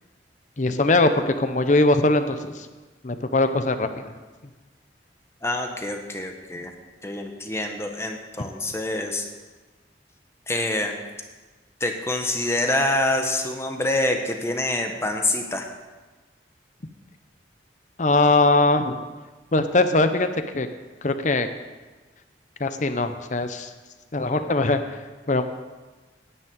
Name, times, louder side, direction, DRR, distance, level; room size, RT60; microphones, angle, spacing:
voice 1, 0.6-2.7 3.0-4.1 18.0-19.0 19.5-20.7 21.0-21.5 22.6-23.7 24.1-25.0 25.3-25.4, left 2 dB, 45° left, 9 dB, 0.8 m, -21 dB
voice 2, 5.4-6.7 7.0-9.3 10.5-10.9 11.8-15.7, left 1 dB, 15° left, 3 dB, 1.1 m, -26 dB
10.0 x 7.3 x 9.0 m, 1.3 s
head